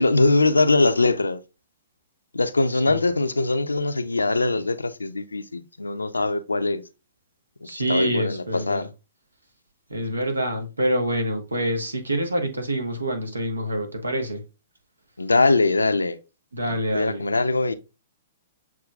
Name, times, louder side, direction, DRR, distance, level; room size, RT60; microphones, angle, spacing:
voice 1, 0.0-1.4 2.3-6.8 7.6-8.9 15.2-16.2 16.7-17.7, left 3 dB, 90° left, 0.5 m, -22 dB
voice 2, 7.6-8.9 9.9-14.4 16.5-17.2, right 1 dB, 90° right, 1.1 m, -26 dB
7.3 x 3.0 x 2.3 m
figure-of-eight pair, 120°, 0 cm